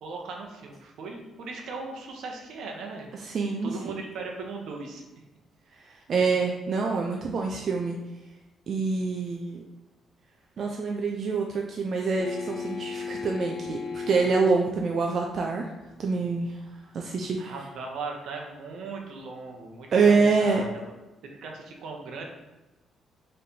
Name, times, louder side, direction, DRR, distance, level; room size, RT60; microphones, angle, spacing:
voice 1, 0.0-3.1 3.6-5.0 17.4-20.9 21.4-22.3, right 4 dB, 80° right, 1 dB, 0.8 m, -38 dB
voice 2, 3.2-4.0 5.8-8.0 8.7-9.6 10.6-15.7 16.0-16.6 16.9-17.5 19.9-20.6, right 4 dB, 55° right, 1 dB, 0.4 m, -26 dB
sound 1, 12.2-14.5 17.1-17.2, left 4 dB, 75° left, 0.6 m, -35 dB
4.1 x 3.2 x 2.7 m, 1.1 s
cardioid pair, 90°, 0 cm